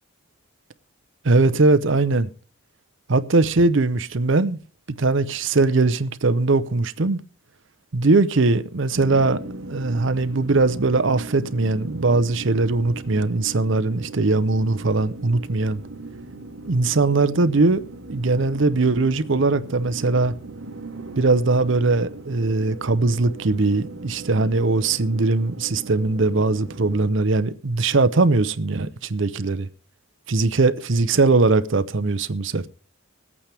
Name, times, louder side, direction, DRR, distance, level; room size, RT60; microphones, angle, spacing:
voice 1, 1.2-2.3 3.1-4.6 5.0-7.2 7.9-9.4 9.7-15.8 16.6-17.8 18.1-20.3 21.1-29.7 30.3-32.7, right 3 dB, 55° right, 0.7 m, -20 dB
sound 1, 8.9-27.1, right 2 dB, 75° right, 1.4 m, -38 dB
21.5 x 8.6 x 3.4 m
head